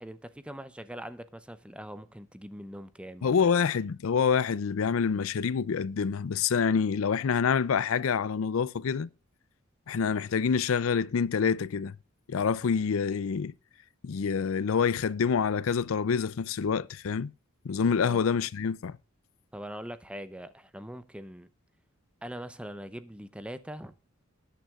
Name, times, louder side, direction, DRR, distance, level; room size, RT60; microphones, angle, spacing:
voice 1, 0.0-3.5 17.8-18.2 19.5-21.5 22.2-23.9, equal, 5° right, 0.6 m, -42 dB
voice 2, 3.2-9.1 9.9-11.9 12.3-13.5 14.0-17.3 17.6-19.0, left 6 dB, 70° left, 0.4 m, -27 dB
20.0 x 9.3 x 2.4 m
head